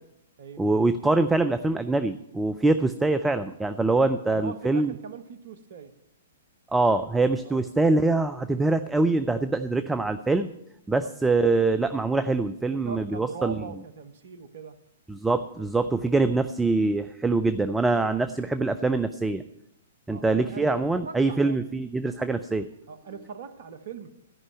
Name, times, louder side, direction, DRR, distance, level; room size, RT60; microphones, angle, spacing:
voice 1, 0.6-4.9 6.7-10.5 10.9-13.6 15.1-19.4 20.1-22.7, right 3 dB, 5° right, 10 dB, 0.5 m, -24 dB
voice 2, 4.3-5.9 7.4-7.6 9.6-9.7 11.0-11.1 12.8-14.8 20.1-21.6 22.9-24.1, right 6 dB, 55° right, 12 dB, 1.0 m, -40 dB
13.5 x 5.5 x 9.0 m, 0.82 s
figure-of-eight pair, 110°, 0 cm